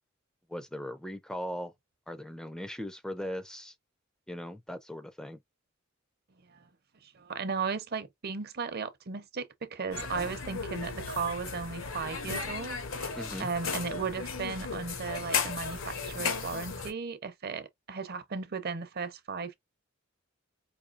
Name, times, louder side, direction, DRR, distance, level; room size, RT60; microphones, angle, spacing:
voice 1, 0.5-1.7 2.1-3.7 4.3-5.4 13.2-13.5, equal, 5° left, 0.4 m, -39 dB
voice 2, 7.0-13.1 13.4-19.6, right 5 dB, 50° right, 0.7 m, -36 dB
sound 1, 9.9-16.9, left 5 dB, 85° left, 1.2 m, -35 dB
5.0 x 2.7 x 2.4 m
head